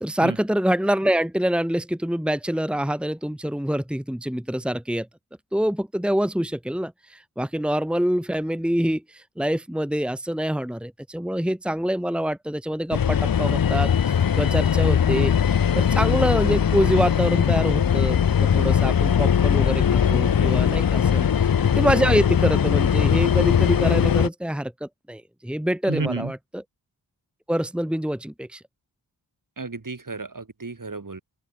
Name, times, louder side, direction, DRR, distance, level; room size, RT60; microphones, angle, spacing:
voice 1, 0.0-5.1 5.5-13.9 14.3-26.6 27.5-28.6, equal, ahead, 1.8 m, -25 dB
sound 1, 12.9-24.3, left 8 dB, 55° left, 0.7 m, -20 dB
voice 2, 25.8-26.3 29.6-31.2, right 3 dB, 50° right, 3.8 m, -31 dB
open air
cardioid pair, 50°, 43 cm